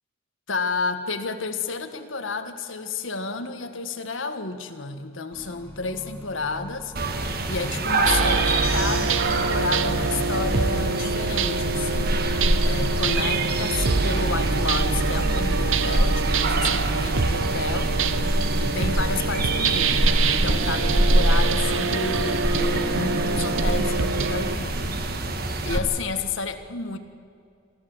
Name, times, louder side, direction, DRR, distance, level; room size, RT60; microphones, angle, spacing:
voice 1, 0.5-12.2 12.6-18.0 18.6-24.9 25.2-25.4 25.6-27.0, left 4 dB, 85° left, 7 dB, 1.6 m, -31 dB
Accelerating revving vroom, 5.3-20.7, left 1 dB, 10° left, 2.1 m, -40 dB
sound 1, 7.0-25.8, right 1 dB, 50° right, 1.6 m, -25 dB
sound 2, 8.0-24.6, right 4 dB, 85° right, 0.9 m, -26 dB
24.5 x 14.0 x 7.9 m, 2.4 s
head